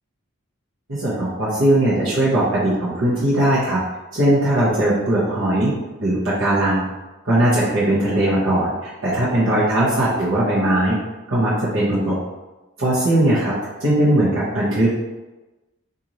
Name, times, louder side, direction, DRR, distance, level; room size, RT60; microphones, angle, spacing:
voice 1, 0.9-3.8 4.1-5.7 6.0-6.9 7.2-11.0 11.3-12.2 12.8-13.5 13.8-14.9, right 1 dB, 65° right, -9 dB, 0.9 m, -19 dB
3.0 x 2.6 x 3.9 m, 1.1 s
head